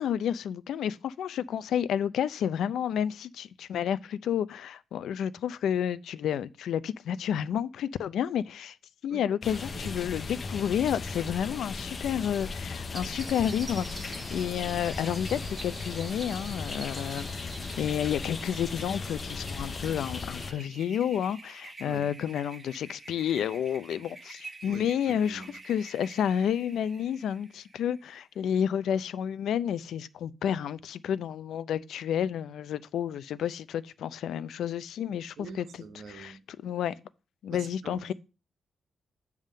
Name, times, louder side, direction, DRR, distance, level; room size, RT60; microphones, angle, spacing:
voice 1, 0.0-8.8 9.0-17.3 17.8-35.6 36.1-36.9 37.4-38.1, left 9 dB, 85° left, 0.4 m, -30 dB
sound 1, 9.4-20.5, left 4 dB, 30° left, 0.6 m, -37 dB
voice 2, 9.5-10.0 21.8-22.1 24.7-25.5 35.4-36.4 37.5-38.0, right 5 dB, 70° right, 1.2 m, -45 dB
sound 2, 12.9-28.2, right 3 dB, 25° right, 0.9 m, -47 dB
9.0 x 3.6 x 6.5 m
wide cardioid pair, 160°, 0 cm